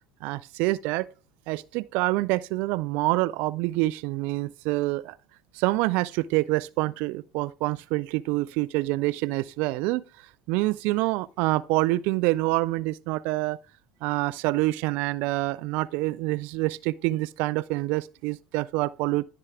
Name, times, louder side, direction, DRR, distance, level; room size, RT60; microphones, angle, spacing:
voice 1, 0.2-1.1 1.5-5.2 5.5-10.0 10.5-13.6 14.0-19.2, right 20 dB, 65° right, 0.3 m, -26 dB
11.5 x 6.7 x 3.5 m
hypercardioid pair, 90°, 3 cm